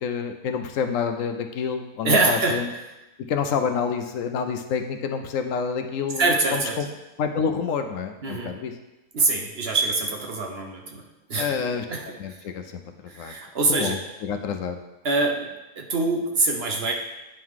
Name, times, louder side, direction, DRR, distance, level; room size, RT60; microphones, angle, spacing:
voice 1, 0.0-2.6 3.3-6.2 6.5-6.9 7.2-8.7 11.3-11.8 12.2-13.3 13.7-14.8, left 6 dB, 75° left, 6 dB, 0.9 m, -28 dB
voice 2, 2.0-2.9 6.2-6.8 8.2-8.6 9.1-11.0 11.3-12.5 13.1-14.0 15.0-15.5 15.8-16.9, right 3 dB, 55° right, 2 dB, 0.9 m, -24 dB
8.9 x 3.7 x 4.7 m, 1.0 s
omnidirectional pair, 1.5 m